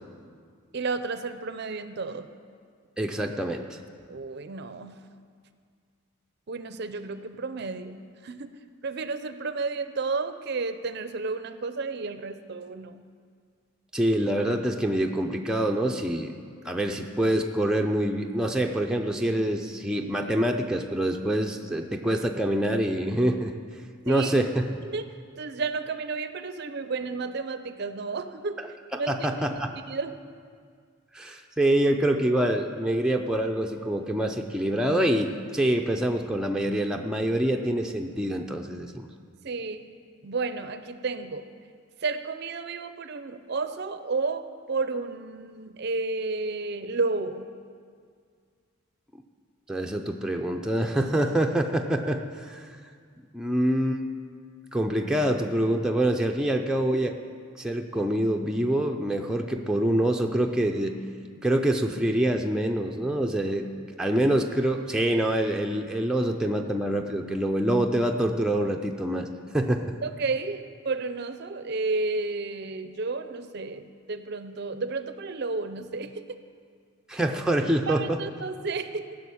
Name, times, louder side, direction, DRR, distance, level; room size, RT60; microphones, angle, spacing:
voice 1, 0.7-2.3 4.1-5.0 6.5-8.5 8.8-13.1 24.0-24.3 24.8-25.1 25.4-28.6 29.0-29.3 29.9-30.2 39.4-39.9 40.2-41.5 42.0-47.5 61.4-61.5 70.0-76.4 77.9-79.2, right 3 dB, 50° right, 10 dB, 0.5 m, -32 dB
voice 2, 3.0-3.6 13.9-16.3 16.6-23.5 24.1-24.7 29.1-29.7 31.1-39.1 49.7-52.7 53.3-54.0 54.7-57.1 57.6-60.9 61.4-63.7 64.0-69.3 69.5-69.8 77.1-78.2, right 1 dB, 5° right, 2 dB, 0.5 m, -25 dB
15.5 x 6.3 x 8.4 m, 2.1 s
head